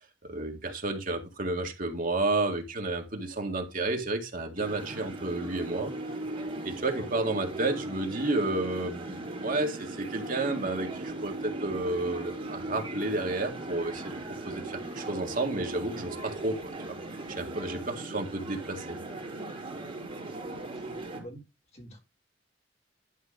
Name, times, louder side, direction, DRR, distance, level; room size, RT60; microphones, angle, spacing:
voice 1, 0.3-5.9 6.6-17.0 17.3-19.0, right 2 dB, 45° right, 1.9 m, -31 dB
sound 1, 4.6-21.2, right 2 dB, 30° right, 4.0 m, -38 dB
voice 2, 20.7-21.4 21.7-22.0, equal, 35° left, 3.5 m, -47 dB
11.0 x 4.6 x 5.0 m
head